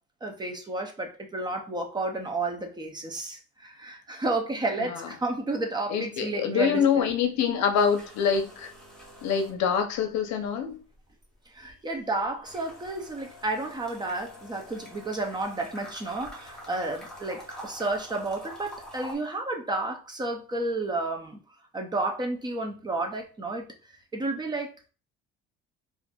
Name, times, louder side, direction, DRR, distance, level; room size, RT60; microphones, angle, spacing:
voice 1, 0.2-7.1 11.5-21.4 21.7-23.7 24.1-24.9, right 2 dB, 15° right, 0.4 m, -31 dB
voice 2, 5.9-8.7 9.2-10.8, left 7 dB, 70° left, 0.6 m, -25 dB
sound 1, 6.7-7.1 7.4-10.1 10.4-19.2, equal, ahead, 0.8 m, -46 dB
4.1 x 2.5 x 2.2 m
cardioid pair, 150°, 29 cm